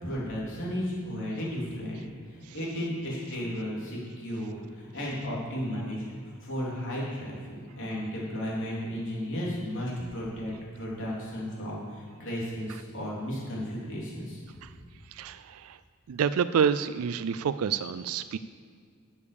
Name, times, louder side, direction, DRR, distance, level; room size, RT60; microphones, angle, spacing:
voice 1, 0.0-2.0 2.3-14.4, equal, 60° left, -5 dB, 3.5 m, -34 dB
voice 2, 15.1-15.8 16.1-18.4, right 7 dB, 75° right, 13 dB, 0.4 m, -28 dB
11.0 x 7.1 x 7.0 m, 2.1 s
head